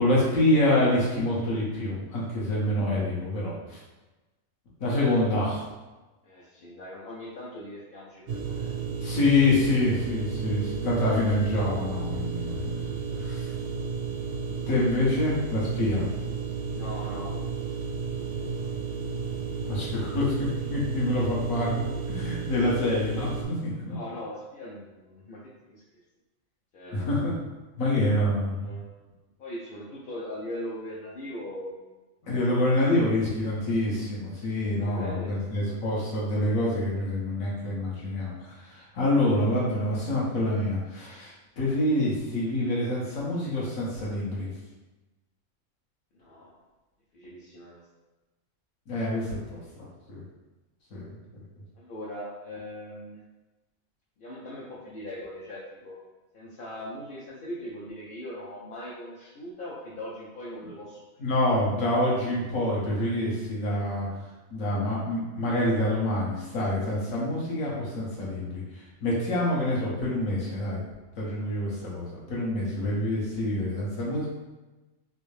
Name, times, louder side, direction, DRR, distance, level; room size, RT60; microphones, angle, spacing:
voice 1, 0.0-3.8 4.8-5.6 9.0-13.5 14.7-16.1 19.7-21.7 22.1-23.8 26.9-27.3 27.8-28.7 32.2-44.5 48.9-50.2 50.9-51.4 61.2-64.1 64.5-70.8 71.2-74.3, left 1 dB, 75° left, -6 dB, 1.4 m, -26 dB
voice 2, 6.2-8.8 16.7-17.4 18.1-19.0 23.9-25.4 25.6-25.8 26.7-27.3 28.4-31.8 32.5-32.7 34.7-35.7 46.2-46.6 47.1-47.9 49.7-49.8 51.8-53.2 54.2-56.0 56.3-61.0, left 1 dB, 55° left, -6 dB, 0.6 m, -40 dB
sound 1, 8.3-23.4, right 5 dB, 70° right, 0.8 m, -32 dB
3.3 x 2.6 x 3.2 m, 1.1 s
omnidirectional pair, 1.4 m